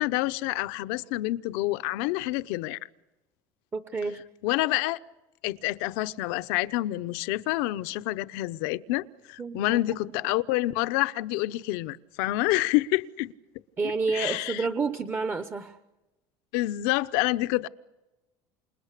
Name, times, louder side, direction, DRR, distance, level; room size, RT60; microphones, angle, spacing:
voice 1, 0.0-2.8 4.4-5.0 5.4-13.3 14.1-14.7 16.5-17.7, left 18 dB, 80° left, 0.9 m, -28 dB
voice 2, 3.7-4.2 9.4-9.8 13.8-15.8, right 4 dB, 20° right, 0.9 m, -29 dB
29.5 x 28.0 x 6.7 m
cardioid pair, 150°, 11 cm